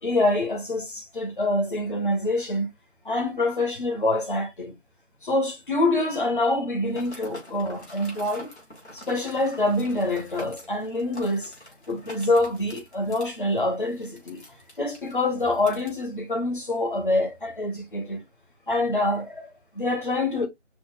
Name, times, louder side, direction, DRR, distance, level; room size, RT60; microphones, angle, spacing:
voice 1, 0.0-2.7 3.0-4.7 5.2-8.5 8.9-11.5 11.9-14.4 14.8-18.2 18.7-20.5, left 2 dB, 45° left, 1.6 m, -26 dB
sound 1, 6.9-15.9, left 1 dB, 65° left, 3.5 m, -46 dB
5.8 x 4.0 x 2.3 m
figure-of-eight pair, 180°, 36 cm